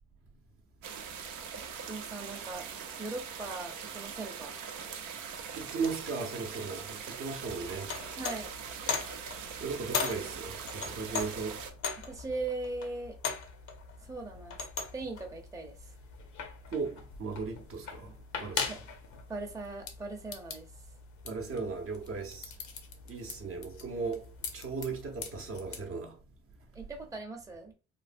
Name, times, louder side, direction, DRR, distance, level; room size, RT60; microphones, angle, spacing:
sound 1, 0.8-11.7, right 7 dB, 85° right, 0.6 m, -42 dB
voice 1, 1.6-2.7 3.0-4.6 8.2-8.5 12.0-13.2 14.0-14.6 14.9-15.9 18.7-18.8 19.3-20.7 26.7-27.7, right 3 dB, 10° right, 0.6 m, -39 dB
voice 2, 5.6-7.9 9.6-11.6 16.7-18.1 18.4-18.8 21.2-22.5 23.1-24.3 24.5-26.1, right 4 dB, 50° right, 0.7 m, -37 dB
sound 2, 7.4-25.8, left 5 dB, 70° left, 0.7 m, -40 dB
3.2 x 2.1 x 2.5 m
cardioid pair, 90°, 30 cm